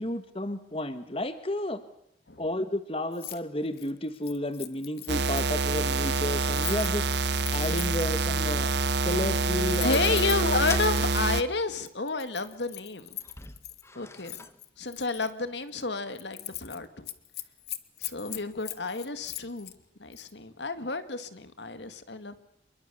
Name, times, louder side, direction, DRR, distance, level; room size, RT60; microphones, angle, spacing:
voice 1, 0.0-1.8 2.4-10.0, left 1 dB, 30° left, 10 dB, 1.3 m, -32 dB
Keys jangling, 3.1-3.4 3.7-8.2 8.9-11.2 11.9-13.8 14.3-15.3 15.7-15.8 16.1-16.8 17.0-19.7 20.1-20.3, left 15 dB, 60° left, 1.4 m, -41 dB
sound 1, 5.1-11.4, right 3 dB, 70° right, 1.2 m, -26 dB
sound 2, 8.4-9.4 9.9-11.0 11.3-11.4 13.1-14.6, left 3 dB, 15° left, 1.2 m, -43 dB
voice 2, 9.8-13.1 14.0-14.4 14.8-17.1 18.0-19.7 20.0-22.4, left 3 dB, 75° left, 10 dB, 2.1 m, -31 dB
27.5 x 22.5 x 7.0 m, 0.75 s
head